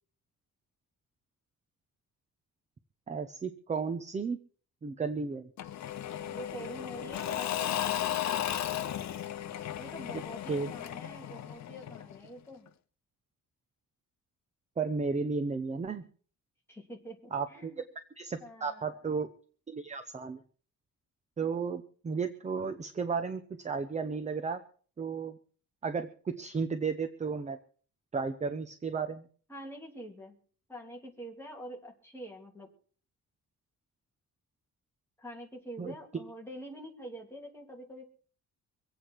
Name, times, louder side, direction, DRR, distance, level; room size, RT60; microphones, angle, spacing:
voice 1, 3.1-4.4 4.8-5.5 10.5-10.7 14.8-16.0 17.3-17.7 18.2-19.3 19.7-20.4 21.4-24.6 25.0-25.4 25.8-27.6 28.1-29.3 35.8-35.9, right 5 dB, 20° right, 9 dB, 0.7 m, -33 dB
Engine / Mechanisms / Drill, 5.6-12.3, left 11 dB, 50° left, 0.8 m, -35 dB
voice 2, 6.0-8.2 9.8-12.7 16.7-17.8 18.4-19.0 29.5-30.3 30.7-32.7 35.2-38.1, equal, 5° left, -1 dB, 2.8 m, -46 dB
25.0 x 8.5 x 4.6 m, 0.44 s
cardioid pair, 175°, 34 cm